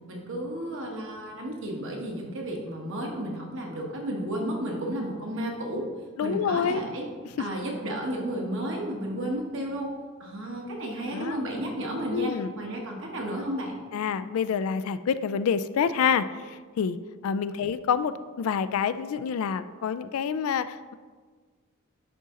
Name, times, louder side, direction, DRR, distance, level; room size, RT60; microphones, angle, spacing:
voice 1, 0.1-5.9 6.2-7.0 7.4-9.9 10.2-13.8 17.5-17.7, right 1 dB, 60° right, 0 dB, 1.4 m, -32 dB
voice 2, 6.2-6.8 11.1-11.4 12.1-12.5 13.9-17.0 17.2-20.9, left 7 dB, 70° left, 14 dB, 0.3 m, -27 dB
10.0 x 4.1 x 3.8 m, 1.5 s
head